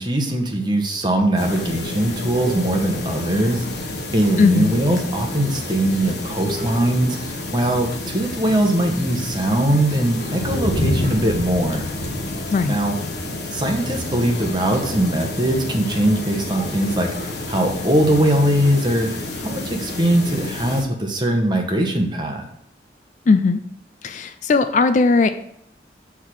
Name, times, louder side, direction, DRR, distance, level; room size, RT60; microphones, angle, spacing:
voice 1, 0.0-11.9 12.7-13.0 13.5-19.1 19.4-22.4, right 1 dB, 25° right, 2 dB, 1.0 m, -21 dB
sound 1, 1.4-20.8, left 2 dB, 65° left, 1.1 m, -29 dB
voice 2, 4.4-4.7 12.5-12.8 23.3-23.6 24.0-25.3, left 4 dB, 40° left, 10 dB, 0.3 m, -17 dB
6.5 x 3.6 x 6.1 m, 0.72 s
head